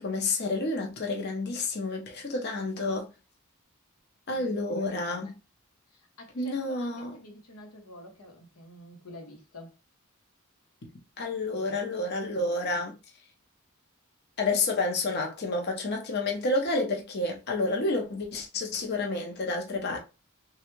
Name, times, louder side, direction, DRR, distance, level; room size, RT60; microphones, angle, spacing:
voice 1, 0.0-3.1 4.3-5.3 6.3-7.2 11.2-12.9 14.4-20.0, left 2 dB, 50° left, 0.7 m, -29 dB
voice 2, 4.3-5.3 6.2-9.7, left 1 dB, 90° left, 0.9 m, -48 dB
3.3 x 2.3 x 3.1 m
head